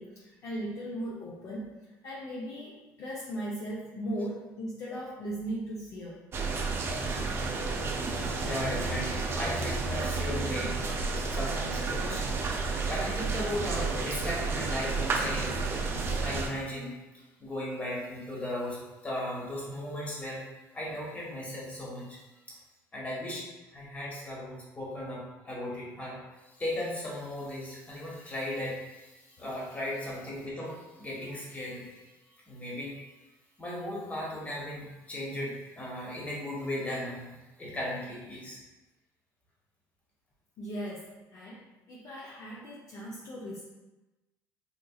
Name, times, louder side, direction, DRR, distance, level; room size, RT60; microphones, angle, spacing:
voice 1, 0.0-1.7 2.0-6.2 40.6-43.7, right 1 dB, 55° left, -5 dB, 0.6 m, -38 dB
sound 1, 6.3-16.5, right 4 dB, 40° right, 0.5 m, -31 dB
voice 2, 8.0-10.7 11.2-12.4 12.9-15.7 16.2-20.4 20.7-22.2 22.5-22.6 22.9-32.1 32.5-33.0 33.6-37.3 37.6-38.6, left 1 dB, 20° left, -5 dB, 1.3 m, -37 dB
4.2 x 2.6 x 2.3 m, 1.1 s
supercardioid pair, 95°, 6 cm